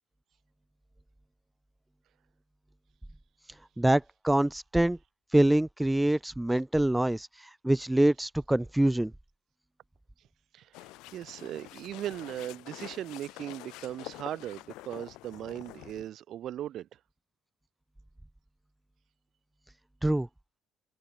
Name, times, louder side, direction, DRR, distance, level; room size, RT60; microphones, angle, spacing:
voice 1, 3.8-5.0 5.3-9.1 20.0-20.3, right 1 dB, 5° right, 0.7 m, -25 dB
voice 2, 10.5-16.9, right 11 dB, 50° right, 1.0 m, -38 dB
sound 1, 10.7-16.1, left 20 dB, 85° left, 5.7 m, -47 dB
cardioid pair, 160°, 0 cm